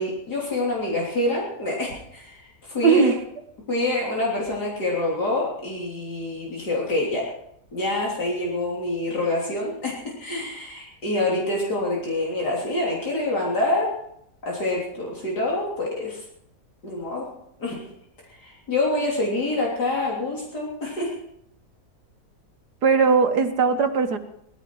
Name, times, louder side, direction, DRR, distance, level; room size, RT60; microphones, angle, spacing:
voice 1, 0.0-2.4 2.7-3.1 3.7-7.3 7.7-13.9 14.4-16.2 16.8-17.3 17.6-17.8 18.4-21.1, left 2 dB, 75° left, -4 dB, 4.0 m, -26 dB
voice 2, 2.8-3.2 22.8-24.2, right 5 dB, 75° right, 7 dB, 1.9 m, -19 dB
18.5 x 15.0 x 4.7 m, 0.74 s
omnidirectional pair, 1.7 m